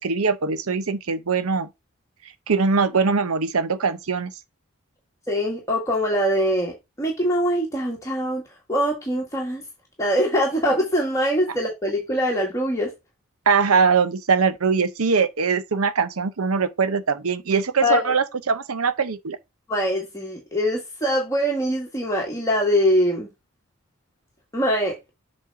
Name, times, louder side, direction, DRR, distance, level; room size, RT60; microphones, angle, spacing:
voice 1, 0.0-1.7 2.5-4.3 13.5-19.4, right 5 dB, 85° right, 0.8 m, -22 dB
voice 2, 5.3-8.4 8.7-9.6 10.0-12.9 17.8-18.1 19.7-23.3 24.5-25.0, equal, 15° left, 1.7 m, -23 dB
7.6 x 4.3 x 3.7 m
head